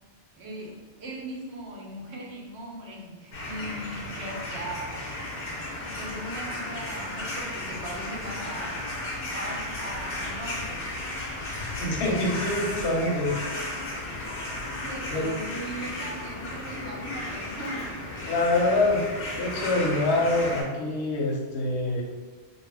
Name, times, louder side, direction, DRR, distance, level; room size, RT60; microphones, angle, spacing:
voice 1, 0.4-5.1 5.8-8.8 9.3-10.9 14.6-17.9, right 1 dB, 85° right, -2 dB, 1.0 m, -39 dB
sound 1, 3.3-20.6, left 1 dB, 65° left, 1.0 m, -34 dB
voice 2, 11.8-13.4 15.1-15.2 18.3-19.0 19.3-22.0, left 2 dB, 85° left, -1 dB, 0.9 m, -25 dB
2.6 x 2.5 x 3.3 m, 1.4 s
omnidirectional pair, 1.1 m